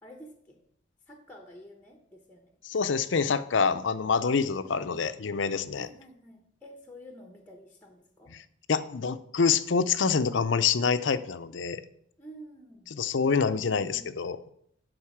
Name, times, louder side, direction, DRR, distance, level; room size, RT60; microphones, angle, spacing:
voice 1, 0.0-0.6 1.1-2.5 4.4-5.1 5.7-8.3 12.2-12.9 13.2-14.1, equal, 10° left, 4 dB, 0.9 m, -50 dB
voice 2, 2.6-5.9 8.3-8.4 8.7-11.8 12.9-14.4, left 5 dB, 70° left, 12 dB, 0.6 m, -26 dB
11.5 x 4.0 x 7.2 m, 0.70 s
head